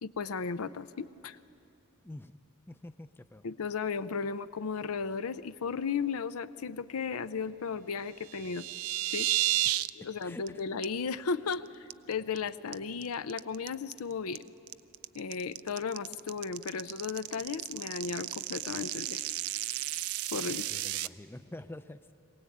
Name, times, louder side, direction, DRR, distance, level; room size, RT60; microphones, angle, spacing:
voice 1, 0.0-1.4 3.4-8.7 9.1-9.3 9.9-14.4 15.1-19.2 20.3-20.7, left 5 dB, 80° left, 13 dB, 0.6 m, -35 dB
voice 2, 2.7-3.4 10.2-10.4 20.6-22.1, left 1 dB, 10° left, 10 dB, 0.5 m, -46 dB
sound 1, 8.2-9.9 10.2-10.5 10.8-10.9 11.3-11.5 11.9-12.4 12.7-21.1, right 15 dB, 80° right, 0.4 m, -33 dB
23.0 x 18.0 x 8.5 m, 2.8 s
head